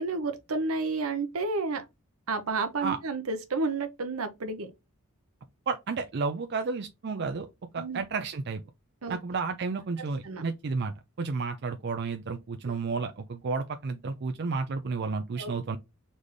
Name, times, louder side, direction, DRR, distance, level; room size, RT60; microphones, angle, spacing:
voice 1, 0.0-1.9 2.3-4.7 7.8-8.0 9.0-9.2 10.2-10.5 12.6-12.7 15.4-15.5, right 3 dB, 75° right, 0.8 m, -31 dB
voice 2, 5.7-7.5 7.7-8.6 9.1-15.8, right 4 dB, 50° right, 0.4 m, -32 dB
4.0 x 3.2 x 3.4 m
head